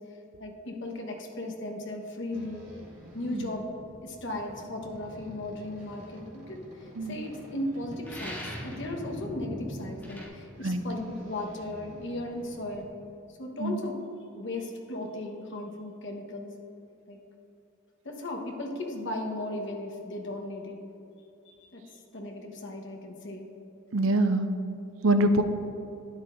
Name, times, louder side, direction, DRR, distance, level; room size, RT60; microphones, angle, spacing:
voice 1, 0.4-2.7 3.1-3.7 4.0-12.9 13.4-14.0 14.3-16.5 17.1-17.2 18.0-20.8 21.6-23.5, left 1 dB, 60° left, 1 dB, 1.3 m, -36 dB
sound 1, 2.3-12.9, equal, 35° right, 2.2 m, -46 dB
sound 2, 8.0-8.9 10.0-10.3, equal, 10° left, 1.8 m, -41 dB
voice 2, 23.9-24.5 25.0-25.4, right 1 dB, 70° right, 8 dB, 0.6 m, -24 dB
12.0 x 9.6 x 2.6 m, 2.9 s
head